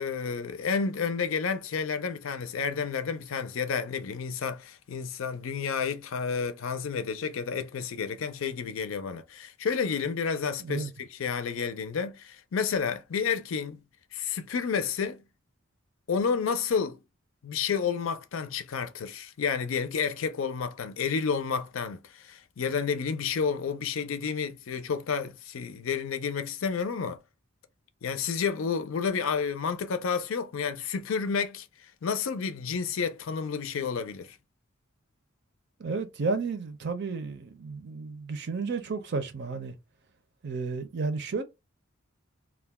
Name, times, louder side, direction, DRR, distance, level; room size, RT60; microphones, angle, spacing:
voice 1, 0.0-13.8 14.1-15.2 16.1-17.0 17.4-27.2 28.0-31.7 32.0-34.4, left 6 dB, 75° left, 0.5 m, -30 dB
voice 2, 10.6-10.9 35.8-39.8 40.4-41.4, right 4 dB, 55° right, 0.6 m, -32 dB
2.4 x 2.2 x 3.4 m
head